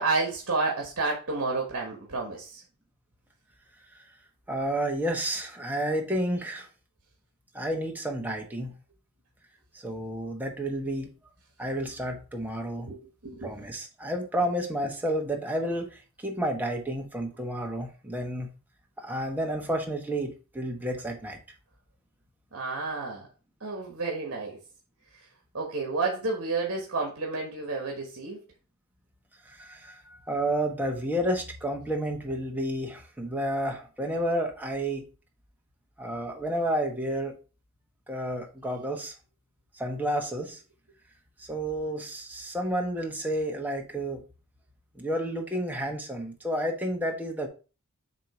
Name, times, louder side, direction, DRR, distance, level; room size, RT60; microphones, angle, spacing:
voice 1, 0.0-2.6 12.8-13.5 22.5-23.3 23.6-24.6 25.1-25.3 25.5-28.4, right 3 dB, 60° right, 0 dB, 1.5 m, -30 dB
voice 2, 4.5-6.7 7.5-8.7 9.7-11.1 11.6-12.9 13.4-18.5 19.0-21.4 29.4-35.0 36.0-37.3 38.1-39.1 39.7-40.6 41.4-44.2 44.9-47.5, right 1 dB, 10° right, 1 dB, 1.2 m, -31 dB
7.4 x 3.0 x 4.9 m, 0.34 s
head